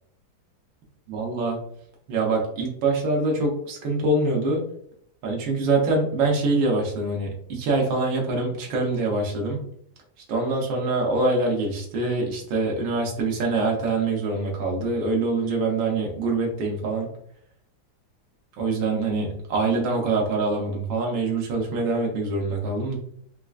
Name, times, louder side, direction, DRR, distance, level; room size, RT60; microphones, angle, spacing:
voice 1, 1.1-1.6 2.1-4.6 5.2-9.6 10.3-17.1 18.6-23.0, right 3 dB, 85° right, -1 dB, 1.6 m, -24 dB
4.3 x 2.4 x 2.3 m, 0.68 s
omnidirectional pair, 2.0 m